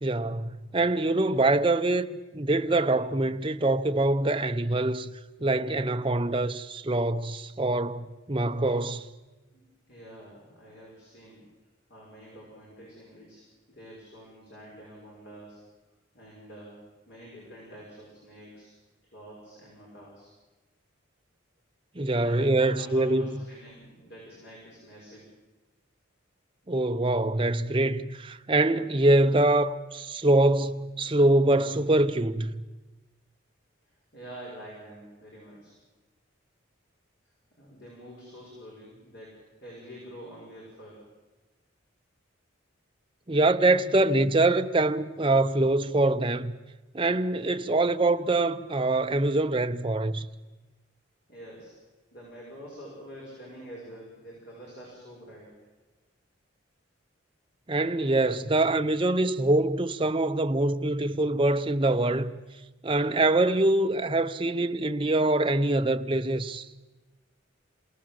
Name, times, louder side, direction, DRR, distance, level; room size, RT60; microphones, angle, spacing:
voice 1, 0.0-2.1 2.3-5.1 5.4-9.1 22.0-23.3 26.7-32.6 43.3-46.5 46.9-50.3 57.7-62.3 62.8-66.7, right 2 dB, 25° right, 0.8 m, -24 dB
voice 2, 9.9-11.5 11.9-13.4 13.7-15.6 16.1-18.7 19.1-20.3 22.2-25.3 33.8-35.7 37.5-41.1 51.3-51.7 52.1-55.5, equal, 55° left, 6.2 m, -47 dB
26.5 x 18.0 x 7.6 m
head